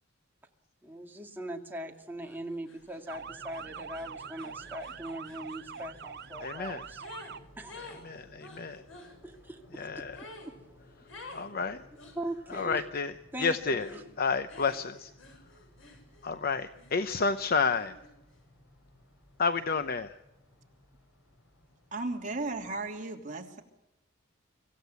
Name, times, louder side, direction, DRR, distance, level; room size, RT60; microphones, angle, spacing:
voice 1, 0.8-7.0 7.6-7.8 9.0-10.0 10.5-10.6 12.1-12.9 13.3-14.0, right 1 dB, 10° right, 1 dB, 2.3 m, -41 dB
sound 1, 2.2-2.4 2.7-7.4 7.7-9.1 10.1-10.5 11.1-11.5 12.0-12.7 13.8-14.1 14.5-16.3 16.7-18.1, left 2 dB, 90° left, 6.7 m, -51 dB
sound 2, 3.1-22.9, left 1 dB, 70° left, 7.2 m, -58 dB
Motor vehicle (road) / Siren, 3.1-7.4, right 6 dB, 55° right, 0.8 m, -44 dB
voice 2, 6.4-6.8 8.0-8.8 9.7-10.2 11.3-11.8 12.5-13.1 13.4-13.9 14.2-15.1 16.2-18.0 19.4-20.2, left 4 dB, 50° left, 11 dB, 0.8 m, -30 dB
voice 3, 21.9-23.6, right 2 dB, 40° right, 2 dB, 3.0 m, -35 dB
25.5 x 15.5 x 8.2 m, 0.93 s
head